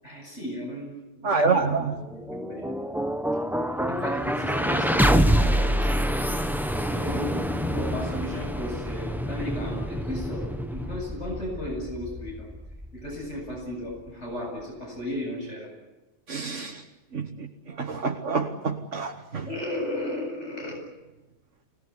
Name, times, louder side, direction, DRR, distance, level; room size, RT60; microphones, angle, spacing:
voice 1, 0.0-2.7 3.9-6.2 6.9-12.5 12.9-15.7 19.5-20.8, left 1 dB, 70° left, 0 dB, 8.4 m, -35 dB
voice 2, 1.2-1.9 16.3-16.8 17.1-19.5, right 4 dB, 75° right, 1 dB, 1.9 m, -27 dB
sound 1, 2.0-14.1, equal, ahead, 0.9 m, -27 dB
26.0 x 19.5 x 9.8 m, 1.1 s
omnidirectional pair, 1.3 m